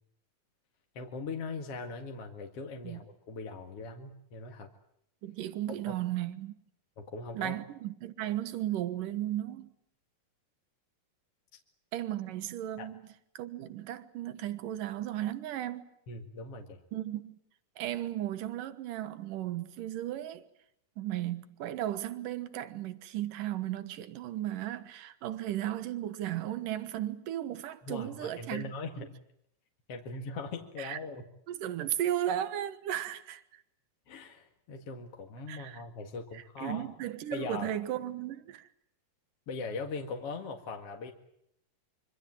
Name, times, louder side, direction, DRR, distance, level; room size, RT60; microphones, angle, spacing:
voice 1, 0.9-4.7 5.9-6.0 7.0-7.6 12.8-12.9 16.1-16.8 27.8-29.1 29.9-31.2 34.1-36.9 37.3-37.7 39.5-41.1, left 3 dB, 50° left, 2.7 m, -40 dB
voice 2, 5.2-6.6 7.3-9.7 11.9-13.0 13.3-15.9 16.9-17.4 17.8-20.4 21.0-28.7 29.0-29.1 30.8-31.0 31.5-33.4 35.5-35.8 36.3-38.7, right 12 dB, 80° right, 3.0 m, -35 dB
26.0 x 25.0 x 7.5 m
omnidirectional pair, 3.8 m